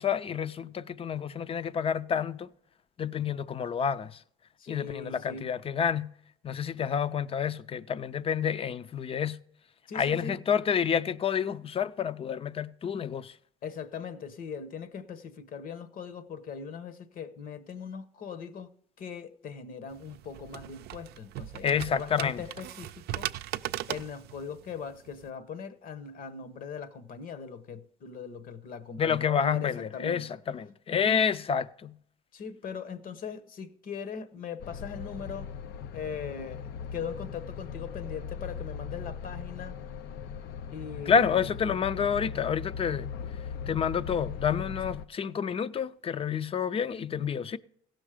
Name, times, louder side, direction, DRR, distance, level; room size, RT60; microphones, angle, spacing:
voice 1, 0.0-2.5 3.0-4.2 4.7-6.1 6.4-9.4 9.9-13.4 21.6-22.4 29.0-32.0 41.1-43.1 43.7-47.6, left 7 dB, 35° left, 0.6 m, -29 dB
voice 2, 4.6-5.5 9.9-10.4 13.6-18.7 19.0-23.3 23.9-30.3 30.9-31.3 32.3-35.5 35.9-39.8 40.7-41.5, left 6 dB, 55° left, 1.1 m, -40 dB
sound 1, 19.9-25.3, right 13 dB, 70° right, 0.5 m, -39 dB
sound 2, 34.6-45.0, left 6 dB, 75° left, 0.6 m, -39 dB
16.0 x 6.3 x 5.0 m
cardioid pair, 110°, 17 cm